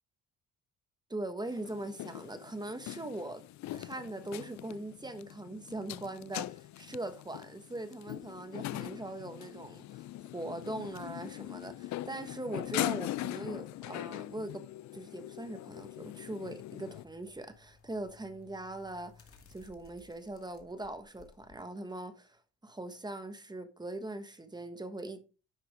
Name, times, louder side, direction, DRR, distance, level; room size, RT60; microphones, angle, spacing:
voice 1, 1.1-3.4 3.7-14.6 14.9-19.2 19.5-25.2, right 2 dB, 15° right, 1.3 m, -41 dB
sound 1, 1.5-17.0, left 15 dB, 65° left, 0.4 m, -41 dB
sound 2, 16.9-21.5 22.0-22.1, left 5 dB, 45° left, 2.2 m, -60 dB
10.0 x 6.0 x 3.6 m
cardioid pair, 90°, 30 cm